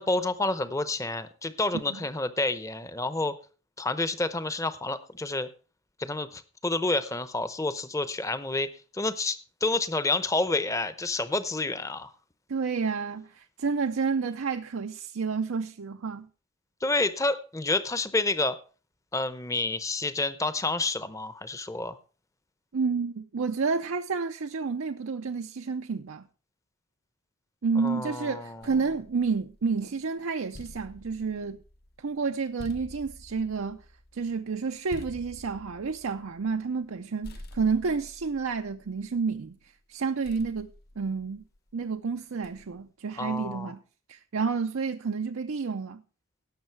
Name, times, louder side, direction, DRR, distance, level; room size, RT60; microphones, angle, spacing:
voice 1, 0.0-3.3 3.8-5.5 6.0-12.1 16.8-18.6 19.1-22.0 27.8-28.7 43.2-43.7, left 2 dB, 15° left, 0.7 m, -29 dB
voice 2, 12.5-16.3 22.7-26.3 27.6-31.6 32.0-33.8 34.1-39.6 39.9-40.7 41.0-41.4 41.7-43.8 44.1-46.0, right 5 dB, 75° right, 0.6 m, -30 dB
sound 1, 28.6-29.9 30.3-37.0 37.2-39.5 40.2-41.7 42.4-42.9, left 1 dB, 50° left, 0.8 m, -48 dB
17.5 x 6.5 x 4.6 m
head